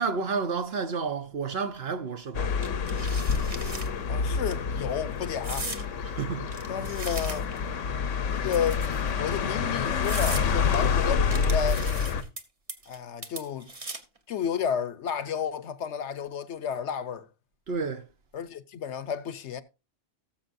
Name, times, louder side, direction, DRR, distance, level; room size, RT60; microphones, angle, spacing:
voice 1, 0.0-2.5 6.0-6.5 10.7-11.0 17.7-18.0, right 5 dB, 55° right, 1.2 m, -31 dB
sound 1, 2.3-12.2, left 6 dB, 85° left, 1.3 m, -28 dB
sound 2, 2.6-3.9 4.3-4.5 5.4-5.8 6.5-7.7 8.5-9.1 9.6-9.7 10.0-10.5 11.3-12.4 12.7-13.0 13.2-14.2, right 2 dB, 30° right, 1.2 m, -38 dB
voice 2, 4.1-5.7 6.7-7.5 8.3-8.9 9.2-11.8 12.9-13.7 14.3-17.3 18.3-19.6, left 8 dB, 70° left, 1.0 m, -32 dB
18.5 x 7.2 x 2.6 m
omnidirectional pair, 1.3 m